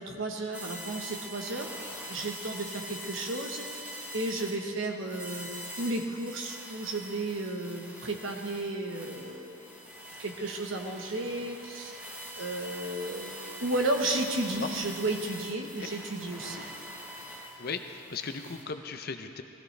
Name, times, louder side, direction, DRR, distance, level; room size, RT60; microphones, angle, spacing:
voice 1, 0.0-5.5 5.8-9.7 10.2-12.0 12.3-13.3 13.6-16.6, right 2 dB, 65° right, 3 dB, 1.2 m, -33 dB
sound 1, 0.5-18.6, equal, 5° right, 1.2 m, -44 dB
voice 2, 17.6-19.4, left 5 dB, 45° left, 7 dB, 0.6 m, -36 dB
16.0 x 15.5 x 3.3 m, 2.7 s
head